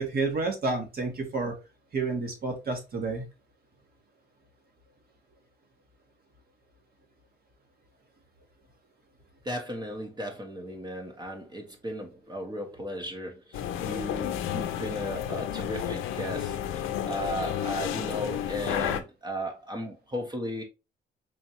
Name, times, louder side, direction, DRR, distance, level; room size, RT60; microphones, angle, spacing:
voice 1, 0.0-1.5 1.9-3.2, right 3 dB, 50° right, 1.5 m, -30 dB
voice 2, 9.4-20.6, equal, 20° right, 0.8 m, -36 dB
sound 1, 13.5-19.0, left 10 dB, 90° left, 0.5 m, -31 dB
4.2 x 2.6 x 2.9 m
cardioid pair, 90°, 20 cm